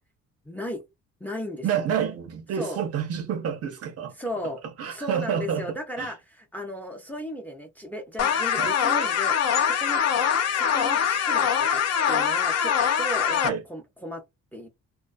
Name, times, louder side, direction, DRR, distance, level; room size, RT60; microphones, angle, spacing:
voice 1, 0.4-0.8 1.2-1.7 2.6-2.8 4.2-4.6 4.9-9.4 9.6-10.0 10.5-14.2 14.5-14.7, equal, 5° left, 0.5 m, -35 dB
voice 2, 1.6-4.2 4.8-6.1 8.6-8.7 13.4-13.6, right 8 dB, 55° right, 0.5 m, -29 dB
sound 1, 8.2-13.5, left 8 dB, 60° left, 0.6 m, -23 dB
2.3 x 2.2 x 2.5 m
cardioid pair, 90°, 30 cm